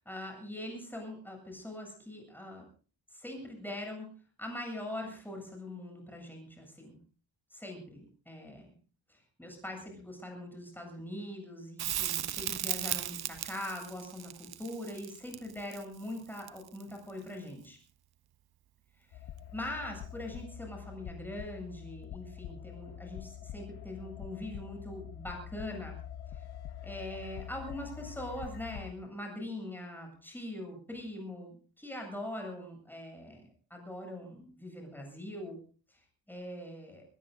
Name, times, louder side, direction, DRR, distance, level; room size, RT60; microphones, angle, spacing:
voice 1, 0.0-2.6 3.1-4.1 4.4-7.0 7.5-8.7 9.1-17.8 19.1-19.2 19.5-26.0 26.3-26.4 26.8-35.6 35.9-36.0 36.3-37.0, left 1 dB, 5° left, 2 dB, 7.9 m, -42 dB
Crackle, 11.8-16.9 19.7-19.8, right 11 dB, 55° right, 0.9 m, -36 dB
sound 1, 19.1-28.9, left 10 dB, 60° left, 0.9 m, -45 dB
23.5 x 21.0 x 2.6 m, 0.40 s
wide cardioid pair, 145°, 44 cm